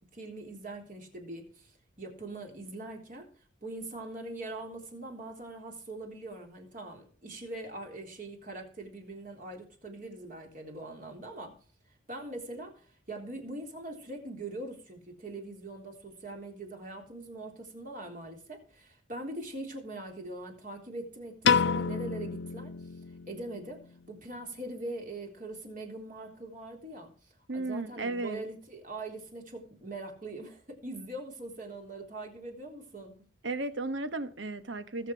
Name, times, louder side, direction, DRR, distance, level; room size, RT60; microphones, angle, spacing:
voice 1, 0.1-3.3 3.6-11.5 12.1-22.7 23.3-27.1 27.5-33.3, right 2 dB, 45° right, 3.6 m, -42 dB
Piano, 21.4-23.7, left 6 dB, 65° left, 0.5 m, -29 dB
voice 2, 27.5-28.4 33.4-35.1, right 2 dB, 75° right, 1.3 m, -34 dB
20.0 x 6.8 x 4.6 m
head